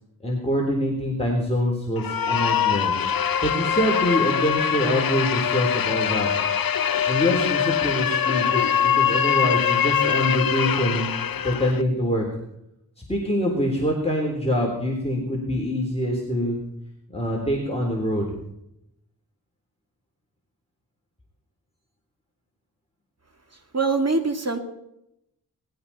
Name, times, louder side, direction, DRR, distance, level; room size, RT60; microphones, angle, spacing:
voice 1, 0.2-2.9 3.4-6.3 7.1-11.1 11.4-12.2 13.1-16.6 17.1-18.3, equal, 15° left, -2 dB, 3.7 m, -25 dB
sound 1, 2.0-11.8, left 8 dB, 60° left, 0.7 m, -23 dB
voice 2, 23.7-24.6, right 3 dB, 40° right, 5 dB, 2.3 m, -23 dB
20.0 x 15.0 x 4.3 m, 0.80 s
wide cardioid pair, 70°, 39 cm